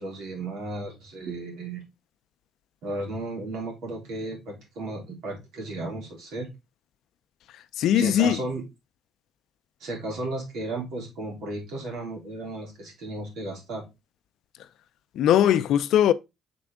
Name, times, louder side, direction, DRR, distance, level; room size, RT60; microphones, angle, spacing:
voice 1, 0.0-1.8 2.8-6.5 7.9-8.6 9.8-13.8, right 2 dB, 80° right, 3.4 m, -34 dB
voice 2, 7.8-8.4 15.2-16.1, left 10 dB, 75° left, 0.5 m, -20 dB
6.1 x 4.3 x 3.6 m
supercardioid pair, 80°, 0 cm